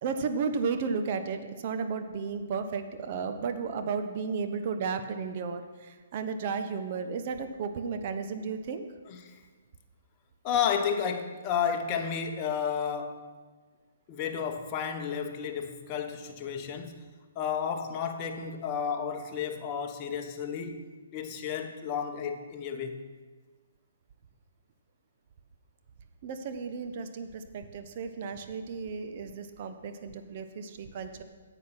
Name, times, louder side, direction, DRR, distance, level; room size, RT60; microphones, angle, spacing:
voice 1, 0.0-8.8 26.2-31.2, right 5 dB, 45° right, 0.9 m, -33 dB
voice 2, 9.1-9.4 10.4-13.3 14.1-17.1 17.3-20.9 21.1-23.0, left 7 dB, 30° left, 1.1 m, -32 dB
9.5 x 8.0 x 5.9 m
figure-of-eight pair, 130°, 0 cm